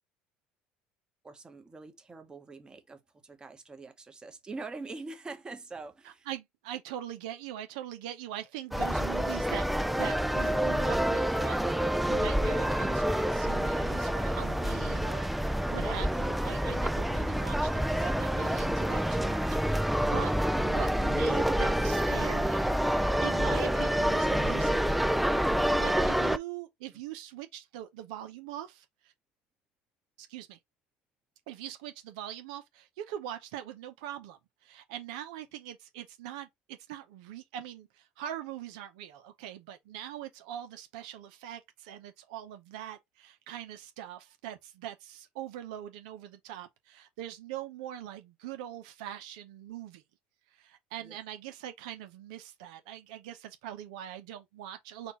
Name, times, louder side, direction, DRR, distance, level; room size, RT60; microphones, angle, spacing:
voice 1, 1.2-6.3 51.0-51.2, right 3 dB, 20° right, 1.0 m, -44 dB
voice 2, 6.0-25.0 25.8-29.1 30.2-30.6 31.5-50.0 50.5-55.1, right 11 dB, 85° right, 0.7 m, -42 dB
sound 1, 8.7-26.4, equal, ahead, 0.3 m, -28 dB
4.4 x 2.4 x 4.1 m
supercardioid pair, 95°, 4 cm